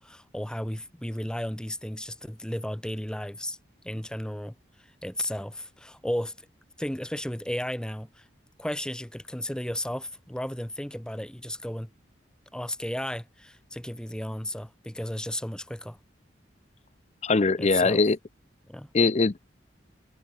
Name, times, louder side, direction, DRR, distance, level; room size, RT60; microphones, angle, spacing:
voice 1, 0.0-3.6 3.8-6.3 6.8-8.2 8.6-11.9 12.5-16.0 17.6-18.0 18.7-18.9, left 1 dB, 5° left, 0.9 m, -34 dB
voice 2, 17.2-18.2 18.9-19.4, left 3 dB, 35° left, 0.6 m, -22 dB
head